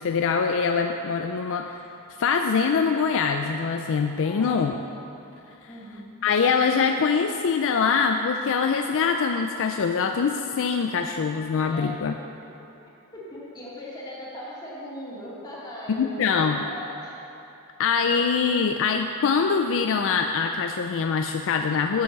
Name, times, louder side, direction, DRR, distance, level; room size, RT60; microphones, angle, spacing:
voice 1, 0.0-1.8 2.2-4.7 6.2-12.1 16.0-16.6 17.8-22.0, left 5 dB, 60° left, 5 dB, 0.4 m, -23 dB
voice 2, 4.2-4.8 5.7-6.1 11.6-12.0 12.5-12.7 13.1-17.2, left 1 dB, 20° left, -8 dB, 2.6 m, -39 dB
7.7 x 7.1 x 6.7 m, 2.8 s
head